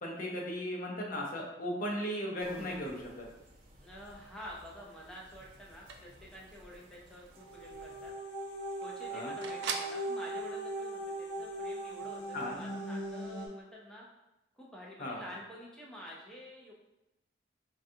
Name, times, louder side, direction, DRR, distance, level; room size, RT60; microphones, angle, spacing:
voice 1, 0.0-3.3 9.1-9.3 12.3-12.6 15.0-15.2, equal, 50° left, -2 dB, 0.7 m, -37 dB
sound 1, 2.4-8.1, right 1 dB, 50° right, 0.8 m, -55 dB
voice 2, 3.8-8.1 8.8-14.0 14.6-16.7, equal, 5° left, -4 dB, 0.6 m, -49 dB
sound 2, 4.9-10.0, right 5 dB, 80° right, 0.3 m, -45 dB
sound 3, 7.4-13.5, right 1 dB, 85° left, 0.7 m, -39 dB
3.8 x 2.3 x 2.7 m, 0.90 s
head